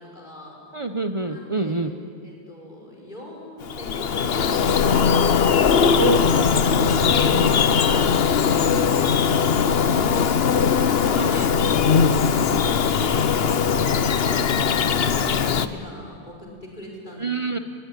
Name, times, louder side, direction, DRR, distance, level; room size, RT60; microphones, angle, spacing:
voice 1, 0.0-0.6 1.2-1.8 2.2-5.2 6.9-17.4, left 1 dB, 50° left, -2 dB, 6.0 m, -40 dB
voice 2, 0.7-1.9 6.0-6.6 7.3-7.5 11.1-11.5 13.1-13.2 17.2-17.6, right 2 dB, 30° right, 8 dB, 1.0 m, -26 dB
Bird vocalization bird call bird song, 3.6-15.7, left 6 dB, 75° left, 1.1 m, -20 dB
23.0 x 21.5 x 10.0 m, 2.1 s
omnidirectional pair, 1.1 m